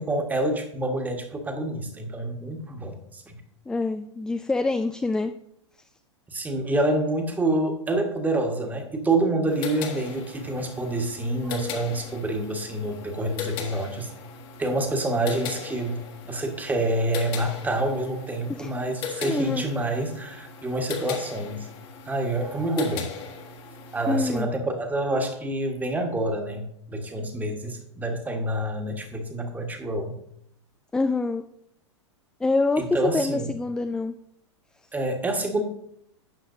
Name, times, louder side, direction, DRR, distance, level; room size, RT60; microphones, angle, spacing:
voice 1, 0.0-3.3 6.3-14.1 14.6-21.7 22.0-23.1 23.9-30.2 32.8-33.5 34.9-35.6, right 1 dB, 10° right, 4 dB, 1.5 m, -27 dB
voice 2, 3.7-5.3 18.5-18.7 19.2-19.6 24.1-24.5 30.9-31.4 32.4-34.1, left 3 dB, 5° left, 8 dB, 0.3 m, -25 dB
sound 1, 9.5-24.4, left 7 dB, 35° left, 1.5 m, -38 dB
12.0 x 8.4 x 2.7 m, 0.74 s
figure-of-eight pair, 100°, 15 cm